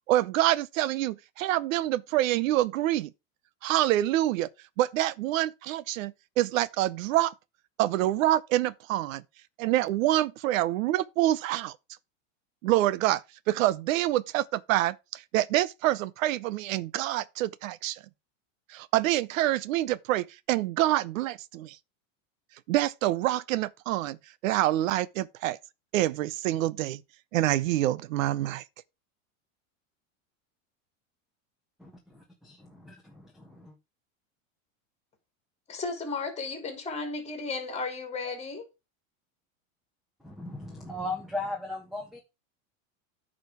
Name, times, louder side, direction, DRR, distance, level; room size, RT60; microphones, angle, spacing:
voice 1, 0.1-3.1 3.6-4.5 4.8-7.3 7.8-9.2 9.6-11.7 12.6-18.0 18.7-21.8 22.7-24.2 24.4-25.6 25.9-27.0 27.3-28.6, right 14 dB, 75° right, 0.7 m, -26 dB
voice 2, 31.8-33.7 40.2-42.2, left 2 dB, ahead, 1.4 m, -38 dB
voice 3, 35.7-38.6, left 4 dB, 15° left, 3.5 m, -34 dB
9.2 x 5.0 x 4.9 m
supercardioid pair, 145°, 39 cm